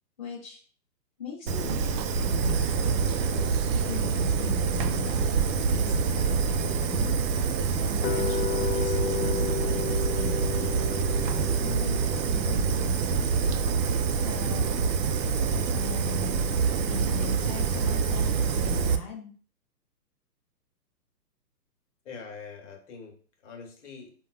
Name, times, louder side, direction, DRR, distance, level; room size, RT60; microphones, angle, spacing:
voice 1, 0.2-0.6 1.2-2.8 3.8-7.2 7.8-10.7 11.2-12.9 14.2-14.8 15.7-16.5 16.9-19.3, left 6 dB, 30° left, -6 dB, 0.4 m, -40 dB
Fire, 1.5-19.0, right 5 dB, 85° right, 0.6 m, -26 dB
sound 1, 8.0-14.1, left 9 dB, 75° left, 0.6 m, -34 dB
voice 2, 22.0-24.1, left 5 dB, 45° left, 2 dB, 1.0 m, -44 dB
3.6 x 2.2 x 2.3 m, 0.42 s
hypercardioid pair, 140°, 50 cm